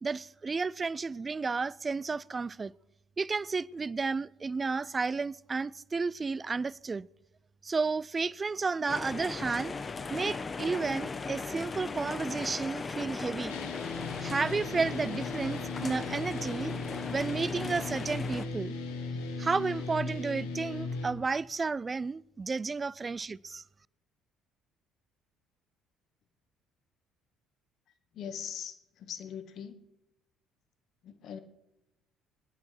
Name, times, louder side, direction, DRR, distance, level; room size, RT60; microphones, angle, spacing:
voice 1, 0.0-2.7 3.2-7.1 7.6-9.8 10.1-13.6 14.2-16.7 17.1-18.7 19.4-23.6, right 4 dB, 30° right, 0.4 m, -32 dB
sound 1, 8.9-18.5, left 4 dB, 35° left, 1.3 m, -38 dB
sound 2, 13.5-21.1, left 3 dB, 75° left, 2.0 m, -37 dB
voice 2, 28.1-29.8 31.0-31.4, left 8 dB, 55° left, 1.5 m, -41 dB
22.5 x 10.5 x 4.5 m
figure-of-eight pair, 50°, 0 cm